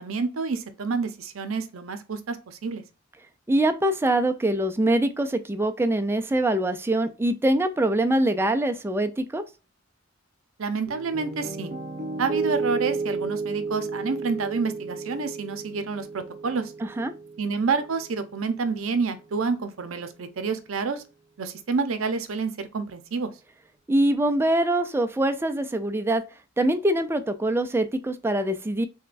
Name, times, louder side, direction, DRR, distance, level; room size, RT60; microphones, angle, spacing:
voice 1, 0.0-2.8 10.6-11.7 12.2-16.7 17.4-21.0 21.4-23.3, right 4 dB, 80° right, 0.6 m, -28 dB
voice 2, 3.5-9.4 16.8-17.1 23.9-26.2 26.6-28.9, right 1 dB, 10° right, 0.4 m, -24 dB
Piano, 10.9-19.0, right 4 dB, 40° right, 1.1 m, -33 dB
6.2 x 2.2 x 2.5 m
head